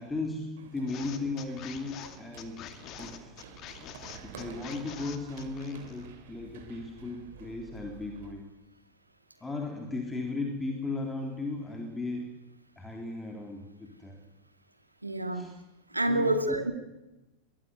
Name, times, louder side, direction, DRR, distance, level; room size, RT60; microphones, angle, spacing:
voice 1, 0.0-2.7 3.0-3.4 4.2-8.5 9.4-12.3 12.8-14.3 15.3-15.5 16.1-16.6, left 3 dB, 10° left, 2 dB, 3.5 m, -36 dB
Run, 0.6-8.3, right 6 dB, 55° right, 3.4 m, -50 dB
sound 1, 0.9-6.1, left 10 dB, 35° left, 2.4 m, -46 dB
voice 2, 15.0-15.6 15.9-16.7, right 1 dB, 85° right, 8 dB, 2.4 m, -28 dB
23.0 x 18.0 x 9.5 m, 1.0 s
figure-of-eight pair, 90°, 0 cm